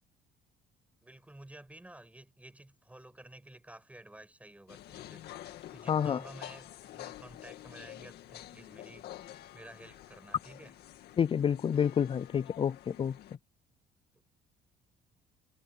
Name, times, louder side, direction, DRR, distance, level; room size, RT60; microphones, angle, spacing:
voice 1, 1.0-9.1 9.5-10.7, right 1 dB, 10° right, 7.5 m, -52 dB
sound 1, 4.7-13.4, left 13 dB, 75° left, 1.9 m, -49 dB
voice 2, 5.9-6.2 11.2-13.2, left 8 dB, 30° left, 0.5 m, -29 dB
cardioid pair, 110°, 17 cm